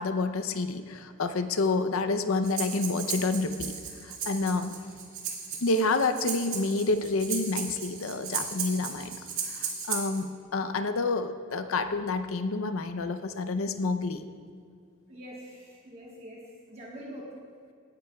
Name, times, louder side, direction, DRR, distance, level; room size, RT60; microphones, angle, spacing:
voice 1, 0.0-4.8 5.6-14.3, left 3 dB, 75° left, 10 dB, 0.6 m, -29 dB
Breathing, 2.4-10.2, right 6 dB, 75° right, 1.9 m, -36 dB
voice 2, 15.1-17.4, equal, 30° right, -4 dB, 1.4 m, -44 dB
17.5 x 9.6 x 2.3 m, 2.3 s
head